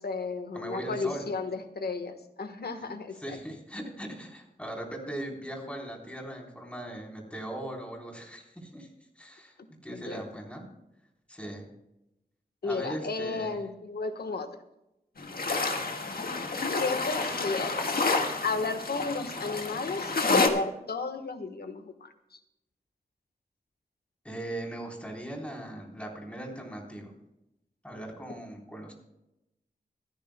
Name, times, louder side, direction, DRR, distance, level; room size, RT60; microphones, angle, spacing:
voice 1, 0.0-3.4 9.9-10.2 12.6-14.6 16.8-18.0 18.4-22.4, left 4 dB, 85° left, 8 dB, 1.3 m, -33 dB
voice 2, 0.5-1.3 3.1-8.9 9.2-9.6 9.8-10.7 11.3-11.7 12.6-13.5 24.2-27.1 27.8-28.9, right 1 dB, 10° left, -1 dB, 3.8 m, -39 dB
sound 1, 15.2-20.5, left 3 dB, 70° left, 1.7 m, -29 dB
26.5 x 10.0 x 2.2 m, 0.88 s
wide cardioid pair, 110°, 16 cm